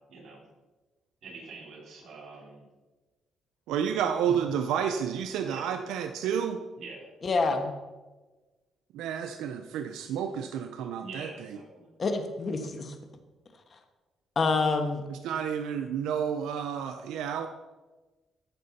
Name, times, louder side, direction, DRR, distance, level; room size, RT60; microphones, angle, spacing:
voice 1, 0.1-0.4 1.2-2.6 5.5-5.6 6.8-7.1 11.0-11.9, right 3 dB, 65° right, -1 dB, 3.8 m, -45 dB
voice 2, 3.7-6.6 8.9-11.3 15.1-17.5, right 8 dB, 90° right, 7 dB, 0.5 m, -30 dB
voice 3, 7.2-7.8 12.0-12.9 14.3-15.0, left 3 dB, 40° left, 6 dB, 1.3 m, -27 dB
14.0 x 6.6 x 4.1 m, 1.2 s
cardioid pair, 90°, 0 cm